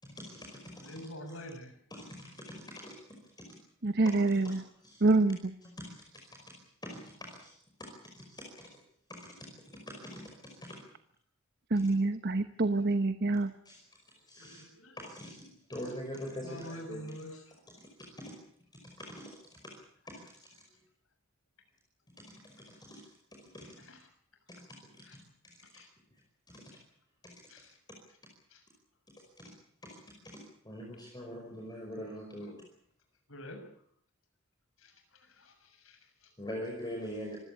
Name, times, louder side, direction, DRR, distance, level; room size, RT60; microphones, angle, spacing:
voice 1, 0.0-1.4 1.9-3.5 4.3-5.0 5.6-7.5 7.8-8.8 9.1-10.8 13.7-13.8 14.1-14.6 15.0-17.4 17.7-18.3 18.7-19.7 20.1-20.5 22.2-23.9 24.7-25.6 26.1-26.2 26.5-26.7 27.2-27.7 29.2-29.5 29.8-30.0 30.2-32.6 36.4-37.4, equal, 20° left, 0 dB, 5.2 m, -45 dB
voice 2, 0.8-1.7 14.4-15.0 16.4-17.4 23.9-24.0 25.1-25.2 25.7-25.9 27.5-27.7 28.5-28.6 33.3-33.6 34.8-34.9 35.2-36.3, equal, 75° left, 6 dB, 7.0 m, -46 dB
voice 3, 3.8-4.6 5.0-5.5 11.7-13.5, right 2 dB, 55° right, 10 dB, 1.1 m, -26 dB
26.0 x 16.5 x 8.5 m, 0.65 s
head